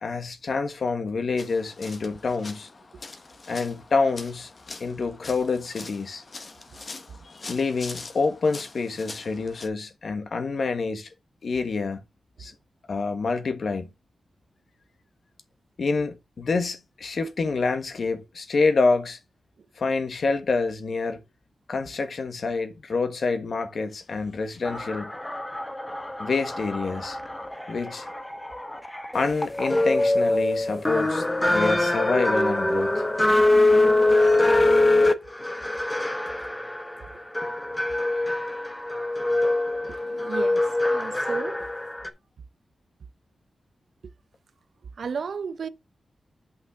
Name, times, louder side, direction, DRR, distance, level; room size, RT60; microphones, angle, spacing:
voice 1, 0.0-2.7 3.5-4.5 4.8-6.2 7.2-11.1 11.4-12.0 12.4-12.5 12.9-13.9 15.8-19.2 19.8-21.2 21.7-25.1 26.2-27.2 27.7-28.1 29.1-33.0, left 4 dB, 55° left, 1.3 m, -27 dB
sound 1, 1.4-9.7, left 3 dB, 40° left, 1.2 m, -43 dB
sound 2, 24.6-42.1, left 2 dB, 15° left, 0.8 m, -24 dB
voice 2, 39.8-41.6 45.0-45.7, right 5 dB, 65° right, 0.6 m, -34 dB
8.5 x 5.5 x 3.5 m
wide cardioid pair, 160°, 0 cm